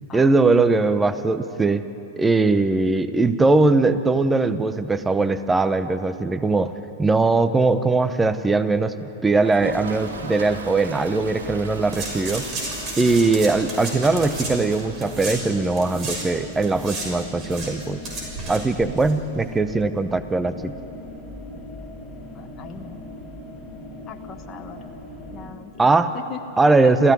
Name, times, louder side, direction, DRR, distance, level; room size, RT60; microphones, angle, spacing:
voice 1, 0.1-1.8 2.2-6.7 7.0-12.5 13.0-18.0 18.5-20.7 25.8-26.1 26.6-27.1, right 3 dB, 10° right, 12 dB, 0.9 m, -20 dB
Toilet flush, 9.3-16.0 16.3-16.4 16.6-16.7 17.0-17.1 19.6-19.7 21.0-21.1, right 4 dB, 75° right, 2.8 m, -39 dB
sound 1, 9.5-25.5, left 1 dB, 10° left, 6.5 m, -39 dB
sound 2, 11.9-16.3 16.5-19.1 19.4-19.5, right 2 dB, 35° right, 6.2 m, -33 dB
voice 2, 22.3-23.0 24.1-24.8 25.3-27.0, left 6 dB, 25° left, 3 dB, 1.5 m, -39 dB
26.5 x 15.5 x 9.5 m, 3.0 s
figure-of-eight pair, 95°, 0 cm